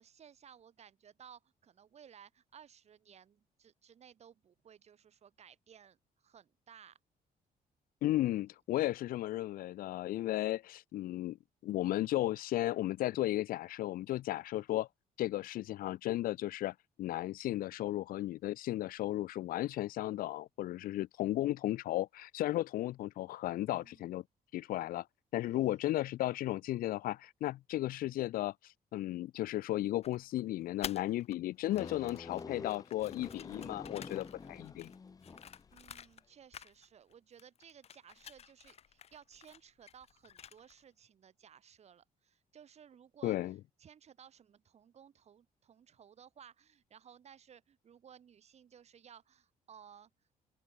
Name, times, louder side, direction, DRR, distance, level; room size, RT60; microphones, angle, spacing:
voice 1, 0.0-7.0 8.2-8.4 23.7-24.0 25.5-25.8 35.7-50.1, right 8 dB, 45° right, 6.4 m, -58 dB
voice 2, 8.0-11.4 11.6-14.9 15.2-24.2 24.5-25.1 25.3-34.9 43.2-43.6, left 15 dB, 65° left, 0.4 m, -35 dB
sound 1, 30.0-31.4 31.6-36.3 36.5-37.1 37.4-40.8, left 8 dB, 40° left, 1.2 m, -50 dB
Dragging a chair with two hands, 31.7-35.7, left 5 dB, 25° left, 1.8 m, -47 dB
open air
cardioid pair, 175°, 16 cm